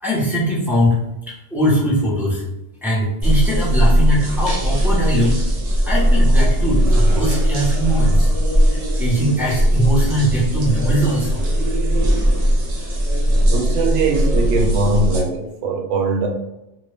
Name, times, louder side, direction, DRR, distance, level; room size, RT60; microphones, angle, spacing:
voice 1, 0.0-2.4 2.8-5.3 5.8-8.3 8.7-11.4, equal, ahead, -8 dB, 1.0 m, -21 dB
sound 1, 3.2-15.2, equal, 45° right, 0.5 m, -18 dB
voice 2, 13.5-16.3, right 3 dB, 85° right, 2 dB, 0.9 m, -20 dB
2.9 x 2.6 x 3.2 m, 0.94 s
omnidirectional pair, 1.2 m